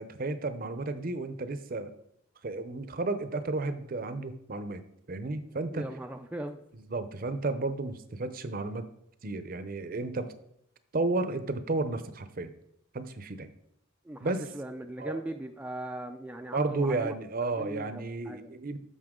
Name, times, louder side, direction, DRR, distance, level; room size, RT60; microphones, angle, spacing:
voice 1, 0.0-1.9 2.4-4.8 5.1-5.8 6.9-8.9 9.2-10.3 10.9-12.5 12.9-13.5 14.2-14.4 15.0-15.2 16.5-18.8, right 3 dB, 45° right, 11 dB, 0.7 m, -32 dB
voice 2, 5.7-6.6 14.0-17.1 17.6-18.5, right 1 dB, 5° right, 4 dB, 0.4 m, -39 dB
13.5 x 5.6 x 3.7 m, 0.76 s
head